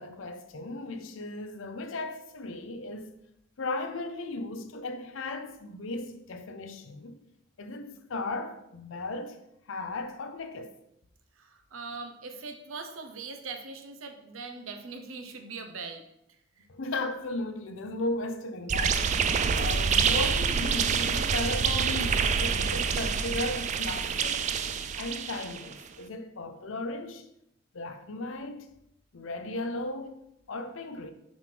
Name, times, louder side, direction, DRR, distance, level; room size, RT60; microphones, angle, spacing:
voice 1, 0.0-3.1 3.6-7.2 7.6-9.4 9.7-10.7 16.7-19.1 19.5-24.4 25.0-27.3 27.7-28.7 29.1-30.2 30.5-31.1, left 2 dB, 75° left, 0.6 m, -36 dB
voice 2, 11.3-16.0 16.3-16.7, right 4 dB, 85° right, 0.9 m, -41 dB
sound 1, 18.7-25.7, right 6 dB, 35° right, 0.3 m, -27 dB
6.2 x 5.3 x 3.4 m
head